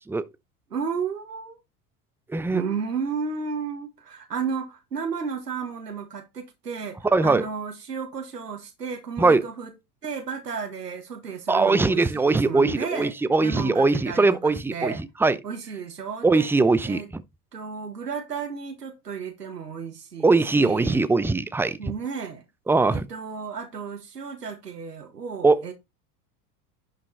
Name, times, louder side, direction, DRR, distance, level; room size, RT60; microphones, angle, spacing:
voice 1, 0.7-1.6 2.5-9.7 10.0-13.1 13.4-15.0 15.4-16.5 16.8-17.1 17.5-21.1 21.8-22.4 22.9-25.7, right 6 dB, 90° right, 1.6 m, -33 dB
voice 2, 2.3-2.6 7.1-7.5 9.2-9.4 11.5-14.9 15.2-15.3 16.2-17.2 20.2-21.8 22.7-23.1 25.4-25.6, right 3 dB, 5° right, 0.6 m, -21 dB
11.0 x 5.1 x 4.0 m
hypercardioid pair, 80°, 47 cm